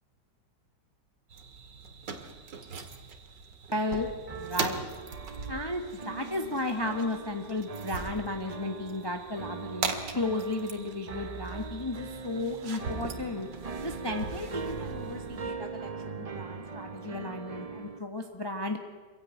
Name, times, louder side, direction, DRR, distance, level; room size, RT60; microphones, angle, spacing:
sound 1, 1.3-15.5, right 4 dB, 90° right, 2.4 m, -41 dB
voice 1, 3.7-4.8 5.5-13.5 13.8-18.8, left 2 dB, 15° left, 4 dB, 1.2 m, -34 dB
sound 2, 4.3-18.0, right 5 dB, 45° right, 0.4 m, -41 dB
24.5 x 16.0 x 9.1 m, 1.4 s
omnidirectional pair, 1.9 m